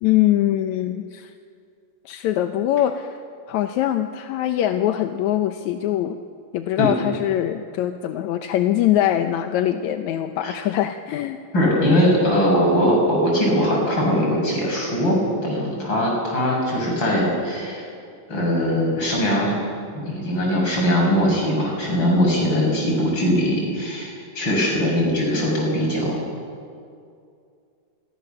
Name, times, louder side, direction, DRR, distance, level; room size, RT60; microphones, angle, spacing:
voice 1, 0.0-1.3 2.1-3.2 3.5-6.2 6.5-11.4, left 12 dB, 70° left, 7 dB, 1.9 m, -22 dB
voice 2, 11.5-17.8 18.3-19.6 19.9-26.2, equal, 30° left, -1 dB, 7.5 m, -21 dB
28.5 x 22.5 x 6.9 m, 2.4 s
omnidirectional pair, 3.9 m